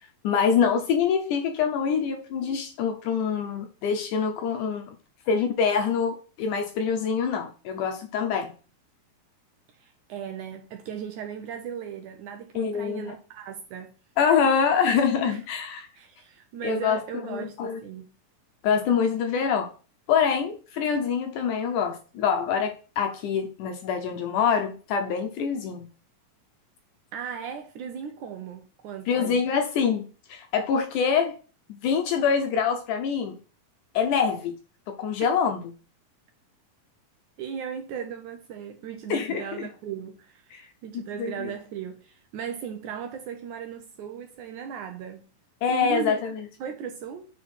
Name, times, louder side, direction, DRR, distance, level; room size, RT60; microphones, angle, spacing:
voice 1, 0.2-5.0 5.3-8.5 12.6-13.2 14.2-15.9 16.6-17.0 17.3-17.8 18.6-19.7 20.1-25.9 29.1-31.4 31.8-33.4 33.9-34.6 34.9-35.6 39.1-39.7 40.5-40.6 41.2-41.5 45.6-46.4, left 6 dB, 75° left, 2.0 m, -25 dB
voice 2, 9.8-13.9 15.2-15.4 16.0-18.1 27.1-29.4 37.4-45.3 45.7-46.2 46.6-47.3, right 8 dB, 75° right, 1.9 m, -37 dB
6.1 x 4.5 x 6.1 m
omnidirectional pair, 4.1 m